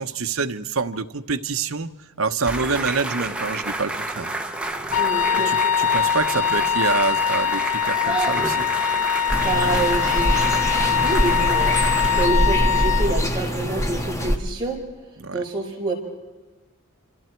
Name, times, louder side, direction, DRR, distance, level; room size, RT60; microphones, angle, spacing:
voice 1, 0.0-1.9 2.2-4.3 5.4-8.7 15.2-15.4, right 4 dB, 65° right, 8 dB, 1.0 m, -26 dB
sound 1, 2.4-12.3, right 2 dB, 5° right, 1.2 m, -30 dB
Wind instrument woodwind instrument, 4.9-13.1, left 8 dB, 75° left, 1.1 m, -22 dB
voice 2, 5.0-5.5 9.4-14.8 15.3-15.9, right 2 dB, 20° right, -3 dB, 5.6 m, -27 dB
sound 2, 9.3-14.4, equal, 15° left, 1.6 m, -23 dB
27.5 x 27.5 x 4.6 m, 1.2 s
head